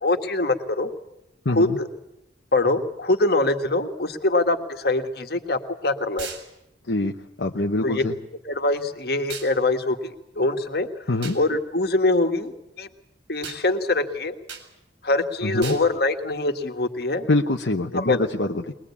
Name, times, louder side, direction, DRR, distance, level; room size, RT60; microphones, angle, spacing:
voice 1, 0.0-0.9 1.5-1.9 2.5-6.3 7.8-8.0 8.5-10.9 11.3-12.9 13.3-14.4 15.0-17.3 17.9-18.3, left 2 dB, 60° left, 7 dB, 1.8 m, -23 dB
voice 2, 1.4-1.8 6.9-7.1 7.4-8.2 11.1-11.4 15.4-15.8 17.3-18.7, left 2 dB, 75° left, 3 dB, 1.1 m, -24 dB
sound 1, 6.2-6.5 9.3-9.5 11.2-11.4 13.4-13.6 14.5-14.7 15.6-15.9, right 6 dB, 90° right, 4.1 m, -36 dB
22.5 x 21.0 x 8.5 m, 0.87 s
head